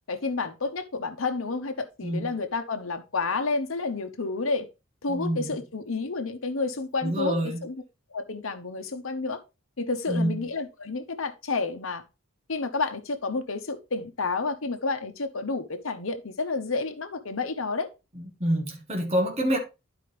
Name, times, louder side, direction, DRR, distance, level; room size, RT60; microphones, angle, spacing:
voice 1, 0.1-4.7 5.0-7.4 7.6-7.8 8.1-9.4 9.8-12.0 12.5-17.9, left 3 dB, 75° left, 1.0 m, -30 dB
voice 2, 5.1-5.5 7.0-7.6 10.1-10.3 18.4-19.6, equal, 30° right, 1.3 m, -26 dB
11.0 x 4.9 x 3.2 m
head